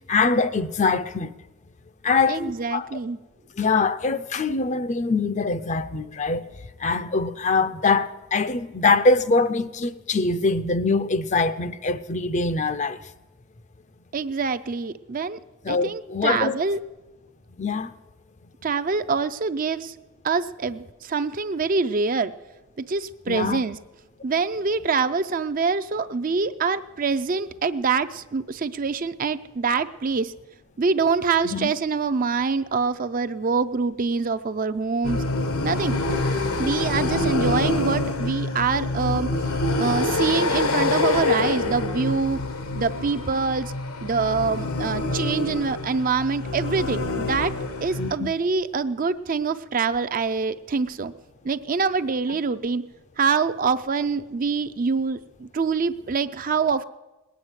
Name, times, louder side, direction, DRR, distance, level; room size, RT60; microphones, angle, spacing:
voice 1, 0.1-1.3 2.0-2.9 3.6-6.4 6.8-13.0 15.6-16.6 17.6-17.9 23.3-23.6 31.4-31.7 37.0-37.3 40.0-40.1 48.0-48.3, left 3 dB, 35° left, 0.5 m, -23 dB
voice 2, 2.3-3.2 14.1-15.4 15.7-16.8 18.6-19.9 20.2-22.3 22.8-23.8 24.2-30.3 30.8-35.2 35.6-36.0 36.6-39.3 39.8-42.4 42.8-43.7 44.0-47.5 47.8-51.1 51.4-52.8 53.2-56.8, right 4 dB, 40° right, 0.5 m, -25 dB
sound 1, 35.0-48.2, left 2 dB, 80° left, 1.3 m, -26 dB
20.0 x 9.1 x 8.0 m
head